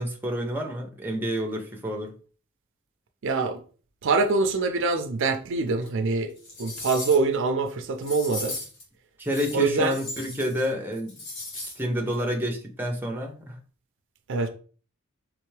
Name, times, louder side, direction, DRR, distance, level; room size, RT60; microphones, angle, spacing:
voice 1, 0.0-2.1 9.2-11.1 11.8-13.6, equal, 10° right, 0.6 m, -29 dB
voice 2, 3.2-3.6 4.0-6.3 6.6-8.6 9.5-10.0 14.3-14.5, right 3 dB, 60° right, 0.5 m, -24 dB
sound 1, 5.8-5.9 6.4-7.3 8.0-8.8 9.2-10.7 10.9-11.8 12.1-12.2, left 2 dB, 55° left, 1.4 m, -37 dB
3.5 x 3.3 x 3.2 m
head